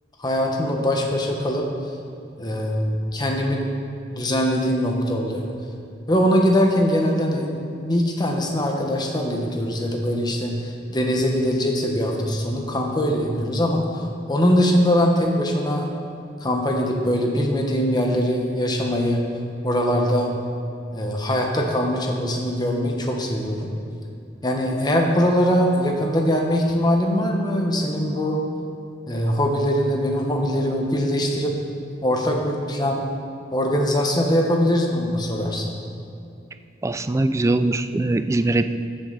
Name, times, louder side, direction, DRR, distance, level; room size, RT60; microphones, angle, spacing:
voice 1, 0.2-1.7 2.4-3.6 4.1-5.4 6.1-7.5 7.8-15.9 16.4-19.2 19.6-20.3 20.9-23.7 24.4-28.4 29.1-31.6 32.0-33.0 33.5-35.7, equal, 20° left, 1 dB, 1.2 m, -22 dB
voice 2, 36.8-38.6, right 2 dB, 15° right, 10 dB, 0.3 m, -21 dB
14.0 x 7.8 x 4.1 m, 2.5 s
head